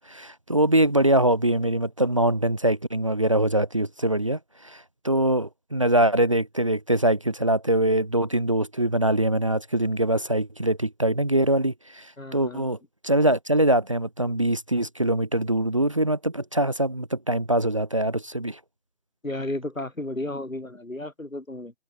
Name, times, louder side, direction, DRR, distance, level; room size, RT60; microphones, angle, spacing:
voice 1, 0.1-12.8 13.0-18.6, right 1 dB, 25° right, 1.0 m, -23 dB
voice 2, 12.2-12.7 19.2-21.7, left 1 dB, 85° left, 7.2 m, -33 dB
figure-of-eight pair, 165°, 39 cm